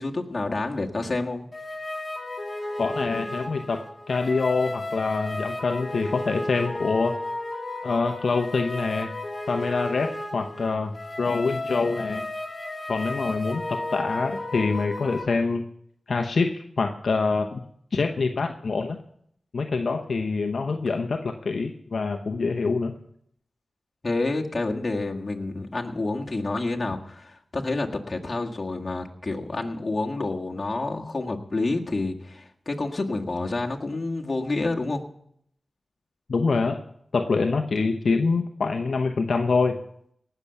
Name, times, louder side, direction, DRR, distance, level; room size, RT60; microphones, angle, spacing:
voice 1, 0.0-1.5 24.0-35.0, left 2 dB, 45° left, 1 dB, 1.7 m, -28 dB
sound 1, 1.5-15.2, left 2 dB, 30° left, 3.3 m, -33 dB
voice 2, 2.8-7.1 7.8-9.1 9.5-12.2 12.9-15.6 16.1-17.6 17.9-19.0 19.5-22.9 36.3-36.8 37.1-39.8, left 4 dB, 70° left, 4 dB, 0.8 m, -25 dB
18.5 x 6.9 x 7.0 m, 0.71 s
cardioid pair, 50°, 0 cm